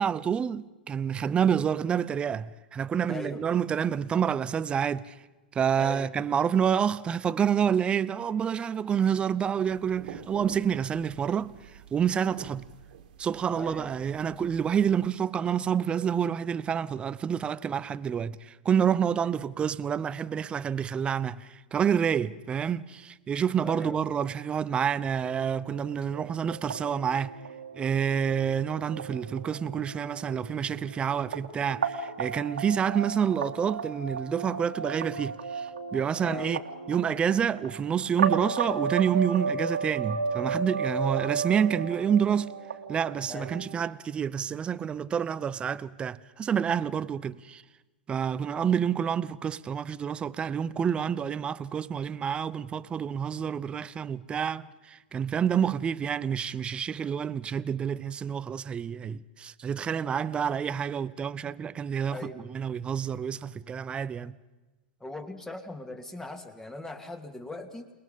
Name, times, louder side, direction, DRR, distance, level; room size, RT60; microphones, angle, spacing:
voice 1, 0.0-5.2 5.5-12.7 13.2-27.3 27.7-42.5 42.9-47.6 48.1-64.4, right 8 dB, 20° right, 0.7 m, -28 dB
voice 2, 3.1-3.4 5.8-6.1 13.6-13.9 19.2-19.3 23.6-24.0 36.2-36.5 43.3-43.5 62.1-62.4 65.0-67.9, left 2 dB, 10° left, 2.5 m, -39 dB
sound 1, 9.6-15.1, right 8 dB, 60° right, 2.0 m, -47 dB
sound 2, 25.1-43.8, right 5 dB, 80° right, 2.0 m, -34 dB
28.5 x 20.5 x 5.3 m
hypercardioid pair, 105°, 5 cm